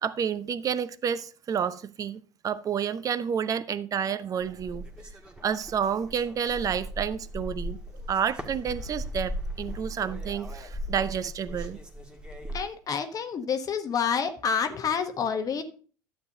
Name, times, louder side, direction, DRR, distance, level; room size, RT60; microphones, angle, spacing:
voice 1, 0.0-4.8 5.4-7.8 8.1-11.8, right 7 dB, 35° right, 0.7 m, -30 dB
sound 1, 4.4-12.7, equal, 10° right, 1.6 m, -38 dB
voice 2, 12.5-15.6, left 6 dB, 35° left, 1.0 m, -28 dB
12.0 x 8.0 x 2.7 m
figure-of-eight pair, 70°, 10 cm